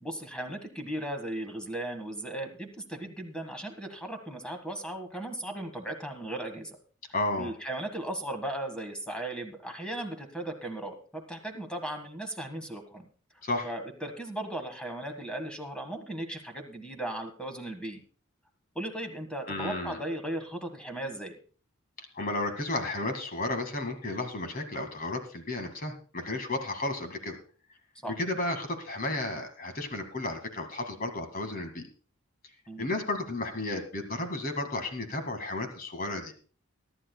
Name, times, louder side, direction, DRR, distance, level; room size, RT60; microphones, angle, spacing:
voice 1, 0.0-6.8 7.4-13.1 13.3-18.0 18.7-21.3 28.0-28.2 32.7-32.9, right 1 dB, 5° left, 5 dB, 1.6 m, -37 dB
voice 2, 7.1-7.5 13.4-13.7 19.5-20.0 22.2-27.4 28.1-31.8 32.8-36.3, left 2 dB, 40° left, 6 dB, 2.0 m, -33 dB
23.0 x 11.0 x 2.3 m, 0.42 s
head